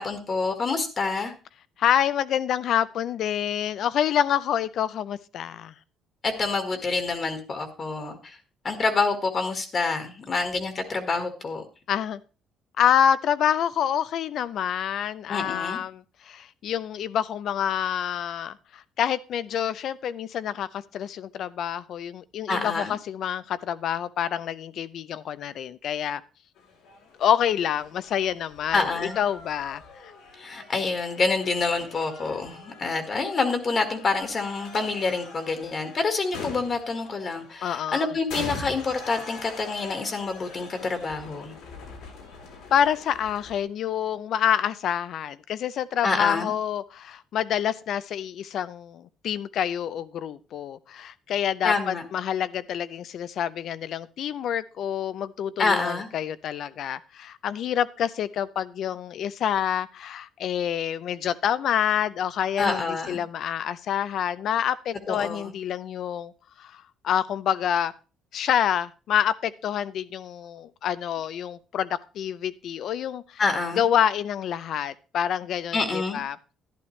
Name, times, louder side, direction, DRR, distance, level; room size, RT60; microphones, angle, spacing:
voice 1, 0.0-1.3 6.2-8.4 8.6-11.6 15.3-15.8 22.5-22.9 28.7-29.2 30.4-41.5 46.0-46.5 51.6-52.1 55.6-56.1 62.6-63.2 65.1-65.5 73.4-73.8 75.7-76.2, left 4 dB, 35° left, 7 dB, 1.6 m, -27 dB
voice 2, 1.8-5.7 11.9-12.2 12.8-26.2 27.2-30.1 37.6-38.1 42.7-66.3 66.6-67.9 68.3-73.4 73.8-76.4, left 9 dB, 65° left, 15 dB, 0.6 m, -27 dB
sound 1, 26.6-43.6, left 3 dB, 90° left, 3.6 m, -43 dB
11.5 x 10.5 x 3.2 m, 0.34 s
cardioid pair, 110°, 0 cm